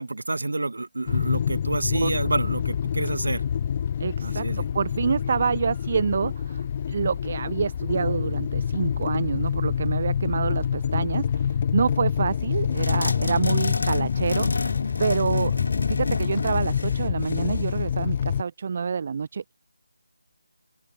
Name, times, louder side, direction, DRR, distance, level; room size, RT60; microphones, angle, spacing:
voice 1, 0.0-3.4 4.2-4.6, right 2 dB, 60° right, 1.9 m, -28 dB
sound 1, 1.1-18.4, left 8 dB, 25° left, 0.4 m, -27 dB
voice 2, 4.0-15.5 15.9-19.5, right 6 dB, 35° right, 0.5 m, -27 dB
sound 2, 12.7-17.8, left 3 dB, 55° left, 2.5 m, -30 dB
open air
figure-of-eight pair, 155°, 0 cm